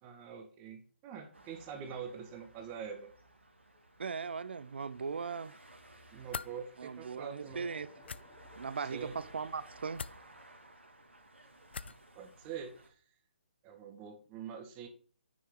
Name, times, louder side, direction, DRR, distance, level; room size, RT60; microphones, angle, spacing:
voice 1, 0.0-3.1 6.1-7.7 8.9-9.2 12.2-13.0 13.6-14.9, right 7 dB, 25° right, 1.7 m, -45 dB
sound 1, 1.3-12.9, right 2 dB, 90° right, 2.3 m, -58 dB
voice 2, 4.0-5.5 6.8-7.9 8.6-10.0, right 5 dB, 65° right, 0.7 m, -38 dB
sound 2, 6.3-6.5 8.0-8.2 9.9-10.2 11.7-12.0, left 5 dB, 65° left, 0.5 m, -41 dB
sound 3, 7.4-12.3, left 3 dB, 25° left, 2.0 m, -60 dB
9.7 x 5.5 x 3.9 m
figure-of-eight pair, 145°, 6 cm